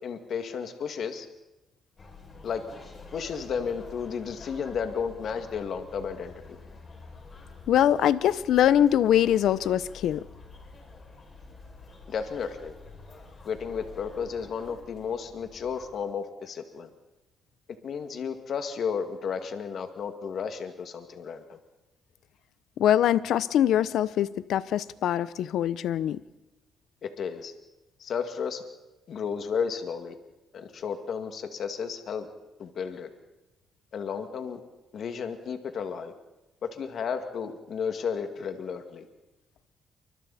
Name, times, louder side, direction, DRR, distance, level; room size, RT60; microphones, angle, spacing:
voice 1, 0.0-1.3 2.4-2.6 3.1-6.6 12.1-12.7 13.5-16.9 17.8-21.6 27.0-27.5 28.0-28.6 29.1-30.2 30.5-32.3 32.6-33.1 33.9-34.6 34.9-36.1 36.6-39.1, left 6 dB, 60° left, 6 dB, 2.2 m, -33 dB
sound 1, 2.0-16.0, left 3 dB, 35° left, 6.3 m, -48 dB
voice 2, 7.7-10.3 22.8-26.2, left 11 dB, 80° left, 16 dB, 0.7 m, -23 dB
28.5 x 25.0 x 4.3 m, 0.99 s
cardioid pair, 90°, 0 cm